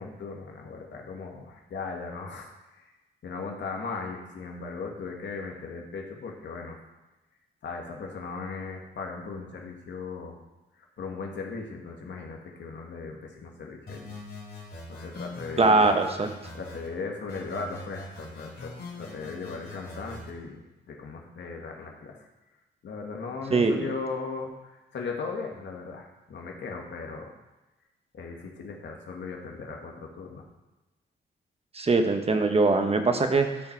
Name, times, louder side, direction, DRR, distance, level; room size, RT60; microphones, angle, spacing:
voice 1, 0.0-2.9 3.2-6.8 7.6-10.4 10.7-14.2 14.9-16.0 16.5-22.3 22.8-27.3 28.1-30.5, left 4 dB, 70° left, 0 dB, 1.7 m, -38 dB
sound 1, 13.9-16.9 17.3-20.3, left 2 dB, 50° left, 2.7 m, -42 dB
voice 2, 15.6-16.3 23.5-23.9 31.7-33.6, right 3 dB, 30° right, 6 dB, 1.0 m, -22 dB
12.0 x 4.4 x 4.5 m, 1.1 s
cardioid pair, 90°, 20 cm